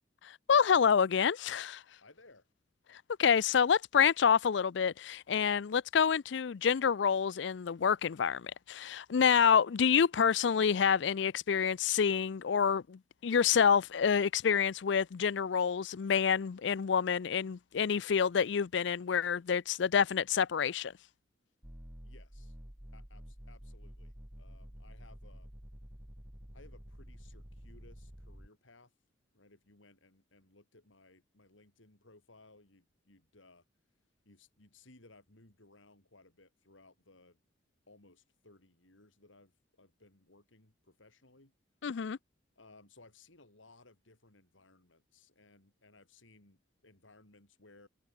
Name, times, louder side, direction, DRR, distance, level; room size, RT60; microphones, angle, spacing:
voice 1, 0.2-1.8 2.9-20.9 41.8-42.2, left 7 dB, 65° left, 0.4 m, -28 dB
voice 2, 2.0-2.5 22.0-22.6 22.9-25.5 26.5-28.9 29.3-33.6 34.3-37.4 37.9-41.5 42.6-47.9, left 2 dB, 85° left, 4.0 m, -61 dB
sound 1, 21.6-28.5, equal, 10° right, 1.3 m, -50 dB
head